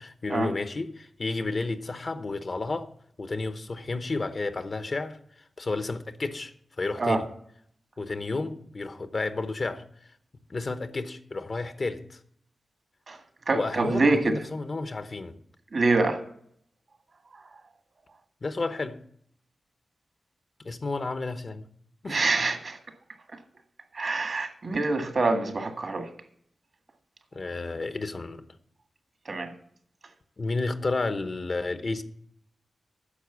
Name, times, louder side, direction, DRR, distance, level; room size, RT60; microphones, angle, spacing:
voice 1, 0.0-2.9 3.2-7.2 8.0-9.8 10.5-12.2 13.5-15.3 18.4-19.0 20.6-21.6 22.0-22.2 27.3-28.4 30.4-32.0, left 3 dB, 45° left, 0.9 m, -31 dB
voice 2, 13.5-14.4 15.7-16.2 22.1-22.8 23.9-26.1 29.2-29.5, right 3 dB, 55° right, 1.7 m, -25 dB
9.9 x 6.6 x 8.1 m
cardioid pair, 75°, 0 cm